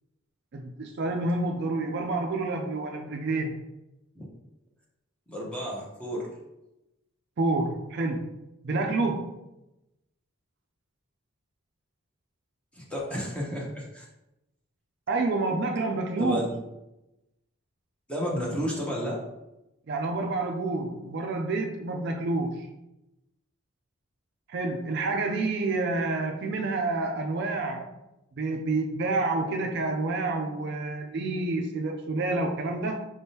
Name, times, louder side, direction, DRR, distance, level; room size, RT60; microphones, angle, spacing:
voice 1, 0.5-3.6 7.4-8.3 8.6-9.3 15.1-16.4 19.9-22.7 24.5-27.9 28.4-33.0, right 2 dB, 50° right, 3 dB, 0.4 m, -28 dB
voice 2, 5.3-6.3 12.7-14.0 16.2-16.5 18.1-19.2, equal, 5° left, -3 dB, 0.9 m, -32 dB
5.1 x 3.6 x 2.8 m, 0.94 s
head